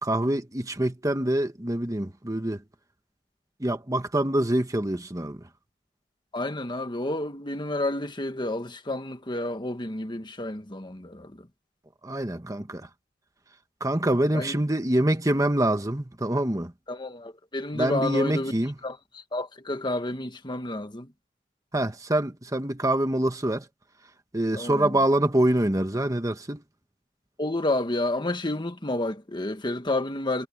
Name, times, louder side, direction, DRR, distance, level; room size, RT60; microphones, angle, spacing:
voice 1, 0.0-2.6 3.6-5.4 12.0-12.9 13.8-16.7 17.7-18.7 21.7-23.6 24.3-26.6, right 1 dB, 20° right, 1.3 m, -25 dB
voice 2, 6.3-11.3 14.3-14.6 16.9-18.5 18.8-19.0 19.3-21.1 24.5-24.9 27.4-30.5, left 2 dB, 25° left, 1.5 m, -30 dB
head